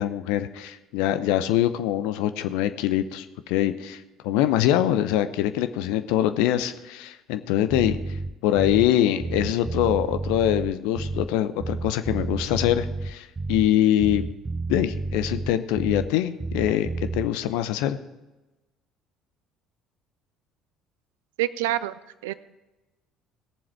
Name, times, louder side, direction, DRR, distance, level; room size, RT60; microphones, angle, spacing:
voice 1, 0.0-8.0 8.4-14.2 14.7-18.0, left 12 dB, 65° left, 11 dB, 0.7 m, -24 dB
Bass guitar, 7.7-8.9 9.2-11.3 11.6-13.7 14.0-16.1 16.4-17.3, right 3 dB, 25° right, 0.8 m, -31 dB
voice 2, 21.4-22.0 22.2-22.3, right 15 dB, 70° right, 17 dB, 0.4 m, -26 dB
18.0 x 7.3 x 4.7 m, 1.1 s
figure-of-eight pair, 55°, 0 cm